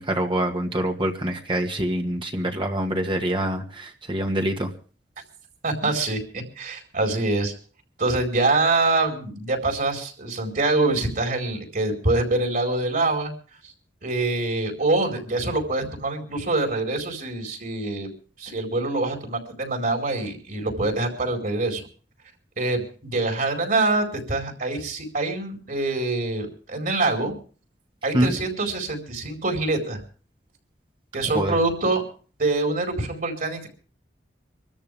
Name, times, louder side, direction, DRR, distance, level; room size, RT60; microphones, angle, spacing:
voice 1, 0.0-4.7 28.1-28.3 31.3-31.6, right 1 dB, 30° right, 3 dB, 1.8 m, -25 dB
voice 2, 5.6-7.5 8.0-13.3 14.0-18.1 18.4-21.8 22.6-27.3 28.0-30.0 31.1-32.0 32.4-33.7, right 2 dB, 50° right, 3 dB, 4.8 m, -25 dB
26.0 x 13.5 x 3.5 m, 0.40 s
head